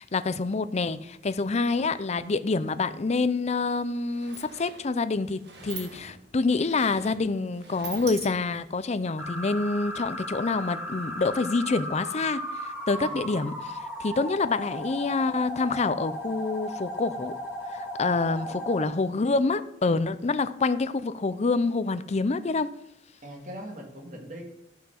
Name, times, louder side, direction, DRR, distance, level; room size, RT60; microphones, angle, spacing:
voice 1, 0.0-17.3 17.7-22.7, left 3 dB, 40° left, 13 dB, 0.5 m, -27 dB
Sliding door, 3.5-3.6 3.9-8.8, right 5 dB, 65° right, 1.7 m, -44 dB
sound 1, 9.2-18.8, equal, 15° right, 2.3 m, -36 dB
voice 2, 13.0-13.3 18.0-18.6 23.2-24.4, equal, 45° right, 1 dB, 2.1 m, -42 dB
12.5 x 5.7 x 5.8 m, 0.81 s
head